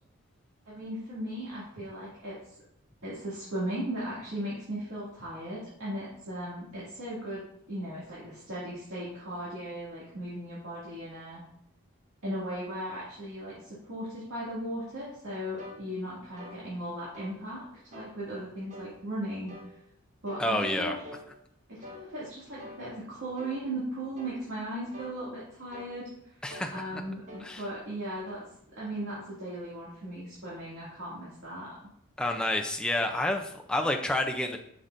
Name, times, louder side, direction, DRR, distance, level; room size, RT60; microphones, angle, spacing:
voice 1, 0.7-2.4 3.0-7.4 7.7-11.4 12.2-17.7 17.9-19.7 20.2-21.0 21.7-26.4 26.7-28.5 28.8-31.8, right 1 dB, 65° right, -9 dB, 2.4 m, -37 dB
sound 1, 15.6-15.8 16.4-16.6 17.1-17.4 17.9-18.2 18.7-18.9 19.5-19.7 20.3-20.5 21.0-21.3 21.8-22.1 22.6-22.8 23.4-23.6 24.2-24.4 24.9-25.2 25.7-26.0 26.5-26.7 27.3-27.5, equal, 35° right, 1.0 m, -45 dB
voice 2, 20.4-21.0 26.4-27.0 27.4-27.6 32.2-34.6, left 1 dB, 5° left, 2 dB, 0.5 m, -29 dB
9.8 x 5.9 x 2.6 m, 0.72 s
head